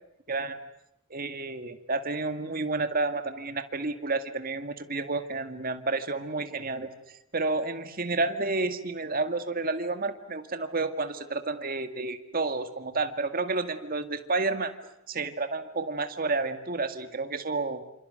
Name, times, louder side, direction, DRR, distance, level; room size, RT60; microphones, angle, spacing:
voice 1, 0.3-0.6 1.1-6.9 7.3-14.7 15.1-17.8, right 3 dB, 40° right, 9 dB, 2.0 m, -30 dB
28.0 x 27.0 x 7.8 m, 0.82 s
head